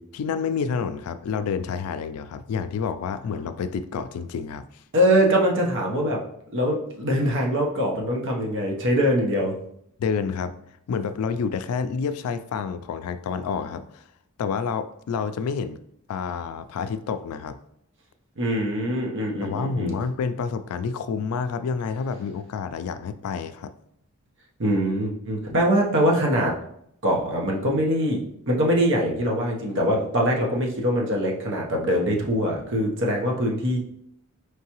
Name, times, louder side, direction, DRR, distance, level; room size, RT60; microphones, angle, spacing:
voice 1, 0.1-4.8 10.0-10.6 10.9-14.0 14.4-15.8 16.1-17.6 19.4-23.7, left 6 dB, 85° left, 11 dB, 0.3 m, -29 dB
voice 2, 4.9-6.2 6.5-9.5 18.4-20.0 24.6-26.5 27.0-28.2 28.5-33.8, equal, 60° right, -1 dB, 0.9 m, -23 dB
4.6 x 3.2 x 2.9 m, 0.73 s
head